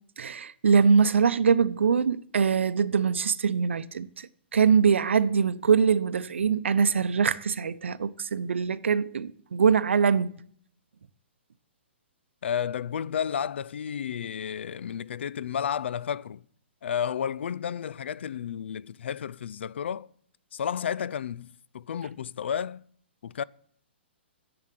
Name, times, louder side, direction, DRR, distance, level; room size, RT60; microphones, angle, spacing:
voice 1, 0.2-4.1 4.5-10.3, right 6 dB, 90° right, 0.7 m, -23 dB
voice 2, 12.4-16.4 16.8-20.1 20.5-22.8 23.2-23.4, left 8 dB, 70° left, 0.4 m, -32 dB
11.0 x 7.9 x 7.4 m
hypercardioid pair, 160°, 6 cm